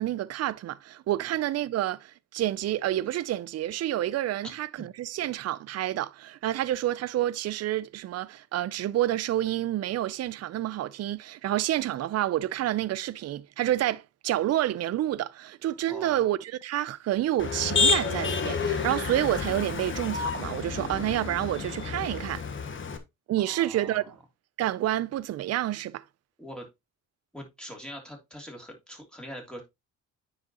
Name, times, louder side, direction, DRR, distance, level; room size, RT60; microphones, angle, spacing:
voice 1, 0.0-22.4 23.3-24.2 24.6-26.0, right 13 dB, 55° right, 0.5 m, -29 dB
voice 2, 15.9-16.3 23.4-24.0 26.4-26.7 27.3-29.6, equal, 5° left, 3.1 m, -43 dB
Motor vehicle (road), 17.4-23.0, left 5 dB, 40° left, 1.2 m, -29 dB
9.5 x 5.0 x 2.9 m
cardioid pair, 90°, 30 cm